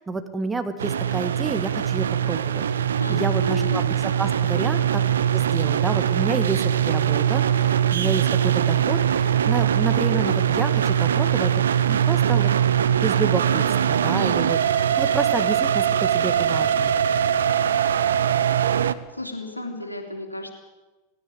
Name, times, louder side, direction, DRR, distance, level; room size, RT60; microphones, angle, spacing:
voice 1, 0.0-2.6 3.1-5.0 5.3-11.5 11.9-12.5 13.0-16.9, right 3 dB, 10° right, 9 dB, 1.7 m, -29 dB
sound 1, 0.8-18.9, right 9 dB, 65° right, 0.8 m, -21 dB
voice 2, 3.0-3.8 4.5-4.7 19.1-20.5, left 1 dB, 85° left, 4 dB, 2.9 m, -32 dB
18.0 x 16.5 x 8.7 m, 1.1 s
figure-of-eight pair, 90°, 0 cm